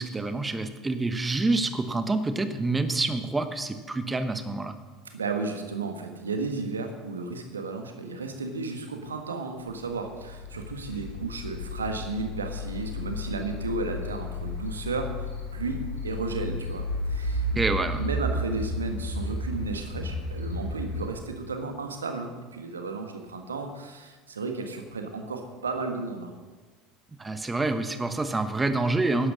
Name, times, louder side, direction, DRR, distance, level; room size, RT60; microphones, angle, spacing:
voice 1, 0.0-4.7 17.5-18.0 27.2-29.3, right 2 dB, 15° right, 9 dB, 1.2 m, -27 dB
voice 2, 5.1-17.6 18.0-26.3, right 4 dB, 80° right, 5 dB, 1.5 m, -33 dB
sound 1, 9.8-21.1, left 1 dB, 90° left, 2.5 m, -33 dB
11.5 x 9.8 x 6.4 m, 1.4 s
figure-of-eight pair, 70°, 0 cm